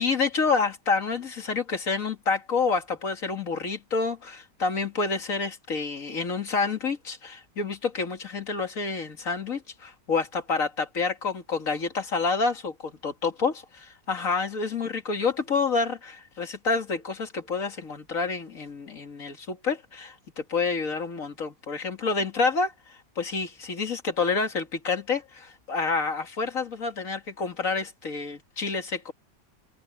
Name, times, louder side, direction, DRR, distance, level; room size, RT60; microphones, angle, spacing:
voice 1, 0.0-13.5 14.1-29.1, left 4 dB, 45° left, 2.6 m, -28 dB
omnidirectional pair, 1.9 m